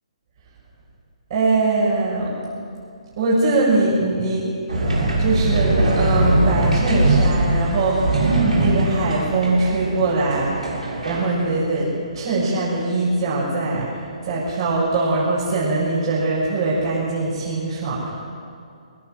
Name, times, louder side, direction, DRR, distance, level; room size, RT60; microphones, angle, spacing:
voice 1, 1.3-2.3 3.2-4.5 5.2-10.6 11.0-13.9 14.2-18.1, right 2 dB, 45° right, -6 dB, 7.4 m, -22 dB
sound 1, 4.7-11.5, right 1 dB, 80° right, 7.1 m, -21 dB
22.5 x 19.0 x 7.9 m, 2.4 s
figure-of-eight pair, 135°, 4 cm